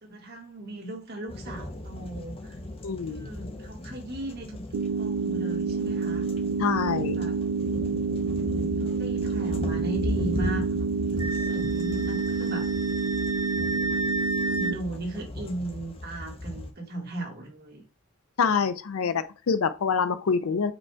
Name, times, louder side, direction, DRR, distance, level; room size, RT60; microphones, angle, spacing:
voice 1, 0.0-2.6 3.1-6.3 6.9-7.4 8.8-12.7 13.5-14.0 14.5-17.8, right 1 dB, 45° right, 1.3 m, -37 dB
sound 1, 1.3-16.7, left 1 dB, 25° left, 0.6 m, -37 dB
voice 2, 2.8-3.3 6.6-7.2 18.4-20.7, left 6 dB, 80° left, 0.5 m, -26 dB
sound 2, 4.7-14.7, right 4 dB, 85° right, 0.4 m, -28 dB
Wind instrument woodwind instrument, 11.2-14.7, right 1 dB, 20° right, 0.5 m, -33 dB
5.1 x 2.3 x 4.4 m
head